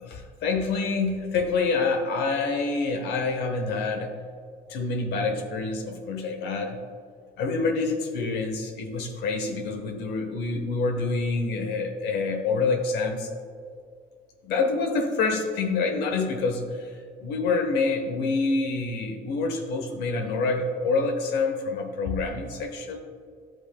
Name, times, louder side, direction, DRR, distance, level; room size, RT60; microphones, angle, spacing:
voice 1, 0.0-4.2 4.7-6.8 7.4-13.3 14.4-16.9 17.2-23.0, left 3 dB, 80° left, 4 dB, 0.9 m, -27 dB
11.5 x 7.8 x 2.3 m, 2.2 s
cardioid pair, 110°, 17 cm